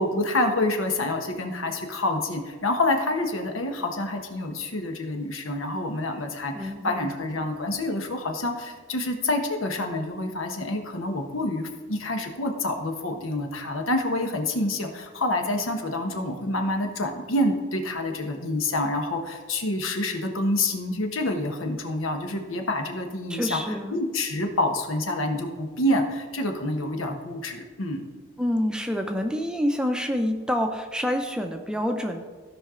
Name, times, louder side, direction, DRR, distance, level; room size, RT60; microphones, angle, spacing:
voice 1, 0.0-28.0, left 1 dB, 85° left, 4 dB, 1.3 m, -27 dB
voice 2, 6.5-7.1 23.3-24.0 28.4-32.2, equal, 5° right, 4 dB, 0.6 m, -27 dB
16.0 x 5.4 x 3.8 m, 1.5 s
head